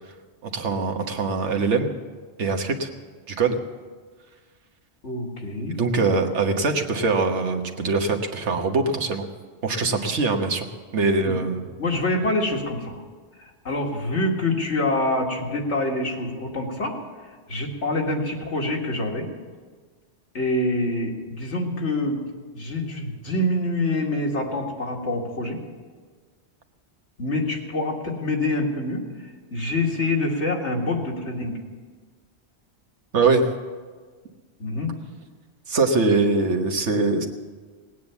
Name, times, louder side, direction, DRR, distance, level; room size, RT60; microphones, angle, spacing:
voice 1, 0.4-1.9 2.4-2.9 3.3-3.6 5.7-9.3 9.6-10.7 10.9-11.7 33.1-33.5 35.7-37.3, right 3 dB, 90° right, 4 dB, 1.6 m, -22 dB
voice 2, 5.0-5.8 11.2-11.4 11.8-13.0 13.4-17.0 17.5-19.3 20.3-22.2 22.5-25.6 27.2-29.0 29.5-31.6 34.6-34.9, left 2 dB, 80° left, 0 dB, 2.2 m, -26 dB
18.5 x 9.4 x 7.1 m, 1.5 s
omnidirectional pair, 1.2 m